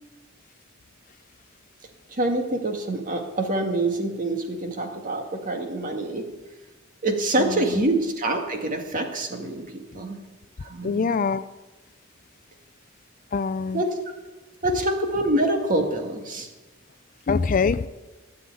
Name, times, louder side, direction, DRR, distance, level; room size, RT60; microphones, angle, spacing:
voice 1, 2.1-6.2 7.0-10.2 10.6-11.1 13.7-13.9 14.6-16.5, right 1 dB, 40° right, 4 dB, 2.0 m, -26 dB
voice 2, 10.8-11.4 13.3-13.8 17.3-17.9, left 5 dB, 40° left, 14 dB, 0.4 m, -23 dB
13.5 x 7.9 x 9.0 m, 1.2 s
head